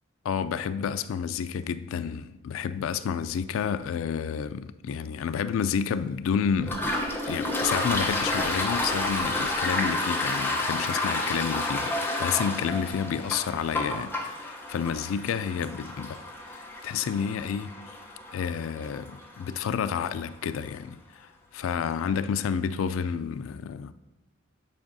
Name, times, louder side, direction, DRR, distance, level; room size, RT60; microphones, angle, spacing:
voice 1, 0.2-6.8 7.3-16.2 16.5-17.8 18.3-23.9, left 7 dB, 75° left, 0.3 m, -30 dB
Toilet flush, 6.6-20.0, left 2 dB, 10° left, 0.8 m, -30 dB
10.5 x 4.7 x 2.7 m
head